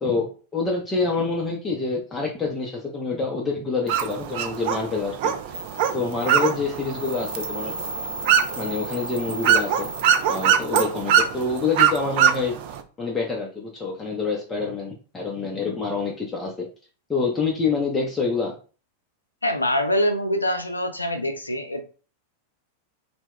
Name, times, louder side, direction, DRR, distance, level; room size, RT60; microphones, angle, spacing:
voice 1, 0.0-5.3 5.9-7.8 8.6-9.9 10.3-12.6 13.0-16.7 17.1-18.5, left 4 dB, 15° left, 0.5 m, -27 dB
sound 1, 3.9-12.8, right 9 dB, 50° right, 0.3 m, -23 dB
sound 2, 5.1-5.2 5.5-10.5, right 1 dB, 80° right, 0.7 m, -36 dB
voice 2, 19.4-21.8, left 1 dB, 80° left, 0.4 m, -24 dB
2.1 x 2.1 x 3.5 m
figure-of-eight pair, 90°, 0 cm